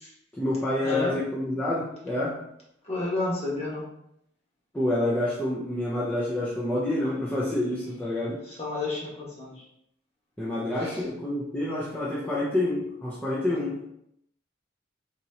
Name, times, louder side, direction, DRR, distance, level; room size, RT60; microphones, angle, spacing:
voice 1, 0.3-2.4 4.7-8.4 10.4-13.8, left 1 dB, 10° left, -7 dB, 0.6 m, -28 dB
voice 2, 2.8-3.8 8.4-9.6 10.8-11.0, left 2 dB, 35° left, -6 dB, 1.3 m, -31 dB
4.0 x 3.0 x 2.7 m, 0.76 s
head